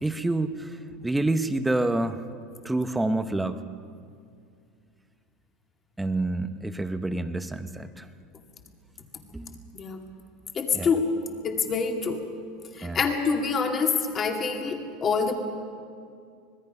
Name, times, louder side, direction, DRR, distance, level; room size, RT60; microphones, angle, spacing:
voice 1, 0.0-0.8 1.0-2.2 2.6-3.6 6.0-8.0 9.3-9.5 10.7-10.9 12.8-13.0, right 2 dB, 5° right, 9 dB, 0.8 m, -27 dB
voice 2, 10.5-11.1 11.4-12.2 12.8-15.4, left 5 dB, 25° left, 3 dB, 2.2 m, -26 dB
25.0 x 20.0 x 5.4 m, 2.3 s
supercardioid pair, 150°, 0 cm